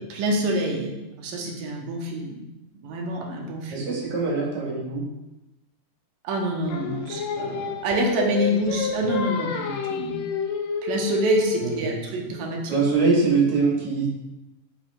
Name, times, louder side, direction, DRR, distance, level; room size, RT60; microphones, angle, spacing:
voice 1, 0.1-2.4 2.8-3.7 6.2-10.2 10.8-12.8, right 1 dB, 75° right, 1 dB, 2.7 m, -27 dB
voice 2, 3.7-5.0 11.6-11.9 12.7-14.1, right 4 dB, 55° right, -2 dB, 3.0 m, -23 dB
Singing, 6.7-11.9, left 6 dB, 75° left, 2.1 m, -30 dB
8.6 x 5.9 x 3.7 m, 1.0 s
omnidirectional pair, 4.2 m